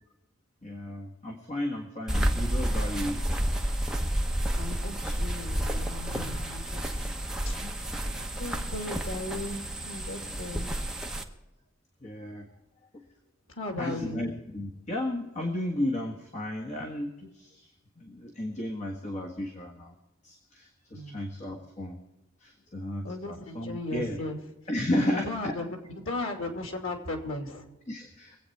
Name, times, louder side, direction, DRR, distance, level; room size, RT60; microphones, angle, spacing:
voice 1, 0.6-3.2 7.0-7.1 7.6-7.7 12.0-12.5 12.9-13.0 13.8-17.7 18.0-19.9 20.2-22.0 22.4-24.2 24.7-25.6 27.9-28.4, left 1 dB, 35° left, 1 dB, 1.6 m, -33 dB
sound 1, 2.1-11.2, right 1 dB, 5° right, 1.0 m, -30 dB
voice 2, 4.5-7.0 7.4-7.6 8.2-10.7 13.5-14.2 20.9-21.2 23.0-24.4 24.9-27.7, left 2 dB, 85° left, 4 dB, 2.7 m, -36 dB
23.5 x 8.7 x 4.6 m, 0.98 s
head